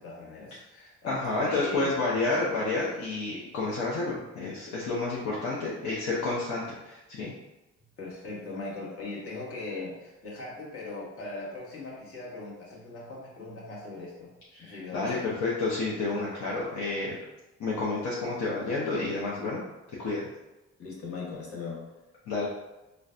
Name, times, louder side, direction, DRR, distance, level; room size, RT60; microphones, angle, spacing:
voice 1, 0.0-2.0 5.5-5.6 8.0-14.3 14.6-15.3 20.8-21.8, left 3 dB, 50° left, -5 dB, 1.2 m, -39 dB
voice 2, 1.1-7.3 14.5-17.2 17.6-19.6 20.0-20.3 22.3-22.5, left 3 dB, 65° left, -6 dB, 0.7 m, -30 dB
3.9 x 2.2 x 2.4 m, 1.0 s
cardioid pair, 90°, 30 cm